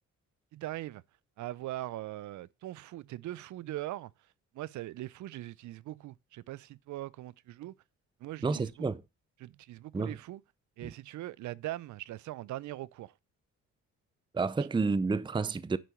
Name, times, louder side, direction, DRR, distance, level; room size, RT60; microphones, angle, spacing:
voice 1, 0.5-1.0 1.4-4.1 4.5-7.7 8.2-8.9 9.4-10.4 10.8-13.1, right 15 dB, 70° right, 0.6 m, -41 dB
voice 2, 8.4-9.0 9.9-10.2 10.8-10.9 14.3-15.8, right 4 dB, 15° right, 0.6 m, -30 dB
10.0 x 4.6 x 7.0 m
cardioid pair, 90°, 30 cm